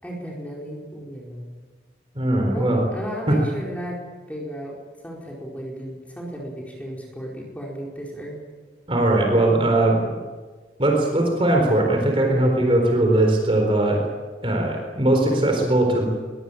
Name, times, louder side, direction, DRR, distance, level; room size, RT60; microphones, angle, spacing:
voice 1, 0.0-1.5 2.5-4.0 4.3-4.7 5.0-8.4, equal, 10° left, -3 dB, 4.7 m, -34 dB
voice 2, 2.2-2.8 3.3-3.4 8.9-10.2 10.8-14.0 14.4-16.1, right 1 dB, 30° right, 1 dB, 4.1 m, -20 dB
23.0 x 22.5 x 9.0 m, 1.4 s
head